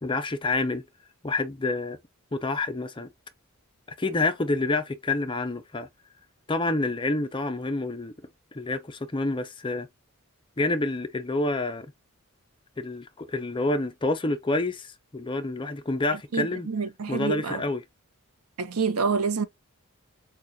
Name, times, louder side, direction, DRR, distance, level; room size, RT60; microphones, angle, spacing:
voice 1, 0.0-0.8 1.2-2.0 2.3-3.1 4.0-5.9 6.5-8.1 8.5-9.9 10.6-11.9 12.8-16.7 17.1-17.8, left 2 dB, 20° left, 0.6 m, -28 dB
voice 2, 16.3-17.6 18.6-19.4, right 5 dB, 85° right, 0.8 m, -27 dB
6.6 x 2.3 x 2.6 m
head